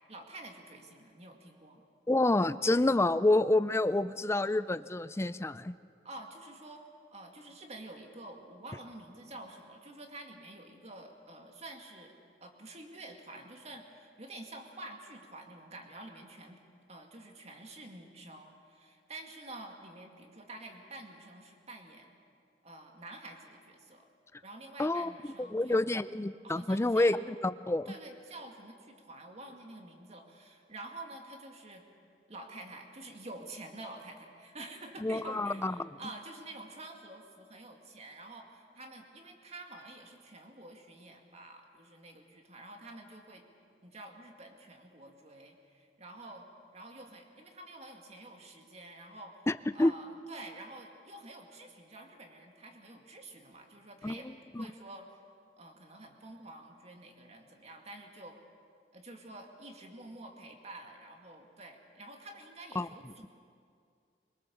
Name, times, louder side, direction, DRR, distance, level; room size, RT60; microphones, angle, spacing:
voice 1, 0.1-1.9 6.0-6.8 7.1-12.1 12.4-16.6 16.9-22.1 22.6-24.1 24.4-25.8 26.4-27.1 27.9-31.8 32.3-43.4 43.8-49.5 49.7-55.2 55.6-58.4 58.9-63.3, right 2 dB, 40° right, 3 dB, 2.3 m, -48 dB
voice 2, 2.1-5.8 24.8-25.1 25.5-27.9 35.0-35.8 49.5-49.9 54.0-54.2 54.5-54.7 62.8-62.9, left 2 dB, 15° left, 14 dB, 0.5 m, -28 dB
23.5 x 21.0 x 7.1 m, 2.3 s
head